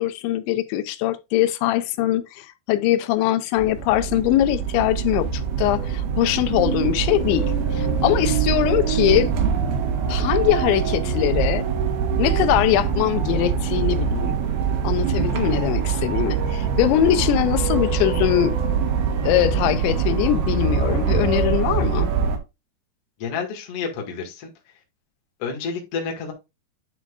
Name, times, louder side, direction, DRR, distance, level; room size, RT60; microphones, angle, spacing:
voice 1, 0.0-9.3 10.1-11.7 12.2-14.4 14.8-18.6 19.2-22.1, left 13 dB, 90° left, 3.1 m, -22 dB
sound 1, 3.6-22.4, right 6 dB, 65° right, 3.3 m, -23 dB
voice 2, 23.2-24.5 25.4-26.3, left 5 dB, 45° left, 2.3 m, -29 dB
10.5 x 6.0 x 2.5 m
omnidirectional pair, 5.1 m